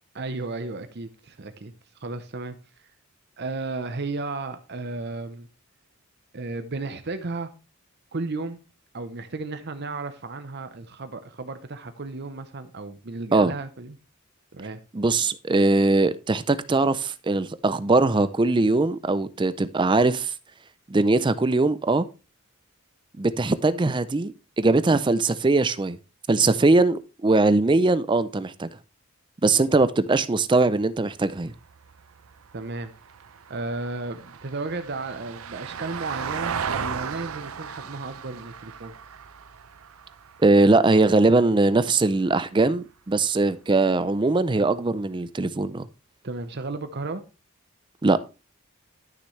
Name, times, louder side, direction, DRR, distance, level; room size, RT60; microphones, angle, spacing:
voice 1, 0.1-1.7 2.0-2.9 3.4-5.5 6.3-7.5 8.1-8.6 8.9-14.0 14.5-14.8 32.5-32.9 33.5-38.9 46.2-47.2, right 3 dB, 50° right, 0.8 m, -34 dB
voice 2, 14.9-20.3 20.9-22.1 23.2-26.0 26.3-28.7 29.4-31.5 40.4-45.8 48.0-48.2, right 3 dB, 20° right, 0.4 m, -21 dB
Vehicle, 31.2-41.7 44.0-44.1, right 7 dB, 85° right, 0.6 m, -36 dB
12.0 x 6.7 x 3.2 m
head